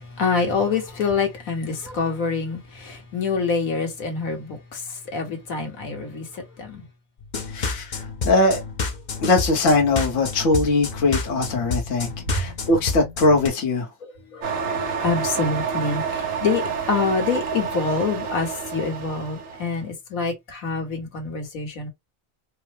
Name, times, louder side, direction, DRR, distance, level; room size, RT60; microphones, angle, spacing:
voice 1, 0.0-6.9 12.3-12.4 14.0-14.5 15.0-21.9, left 4 dB, 85° left, 1.6 m, -26 dB
sound 1, 7.2-13.5, left 4 dB, 45° left, 0.7 m, -29 dB
voice 2, 7.5-8.6 9.2-13.9, left 2 dB, 65° left, 1.4 m, -21 dB
sound 2, 14.4-19.7, right 6 dB, 70° right, 1.3 m, -28 dB
4.5 x 2.0 x 3.2 m
omnidirectional pair, 1.4 m